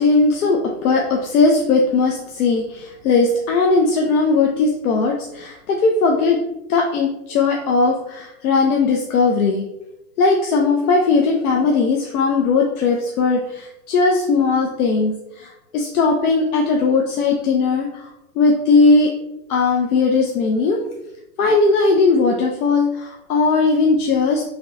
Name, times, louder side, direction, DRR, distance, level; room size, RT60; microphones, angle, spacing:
voice 1, 0.0-6.4 6.7-9.6 10.2-19.1 19.5-20.8 21.4-24.4, left 4 dB, 75° left, 1 dB, 0.8 m, -18 dB
4.9 x 3.0 x 3.2 m, 0.89 s
hypercardioid pair, 155°, 44 cm